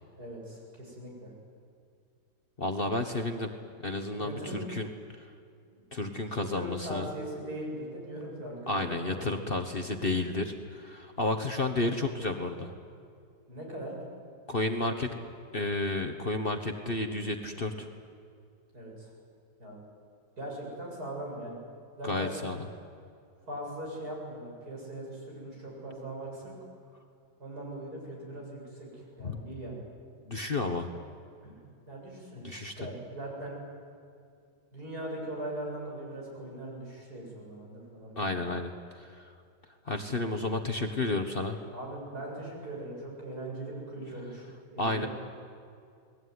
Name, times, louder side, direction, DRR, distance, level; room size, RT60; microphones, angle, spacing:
voice 1, 0.2-1.3 4.2-4.7 6.0-6.1 6.4-9.3 13.5-14.0 14.4-14.5 18.7-19.1 19.6-19.8 20.4-21.6 22.0-22.4 23.5-26.5 27.4-29.8 31.4-31.6 31.9-32.5 32.8-33.6 34.7-38.4 41.7-45.1, right 1 dB, 65° right, -2 dB, 8.3 m, -40 dB
voice 2, 2.6-3.5 3.8-4.9 5.9-7.1 8.7-12.7 14.5-15.1 15.5-17.9 22.0-22.6 29.2-29.4 30.3-30.9 32.4-32.7 38.2-38.7 39.9-41.6 44.8-45.1, left 2 dB, 35° left, 5 dB, 1.4 m, -31 dB
29.0 x 20.5 x 9.7 m, 2.3 s
omnidirectional pair, 1.8 m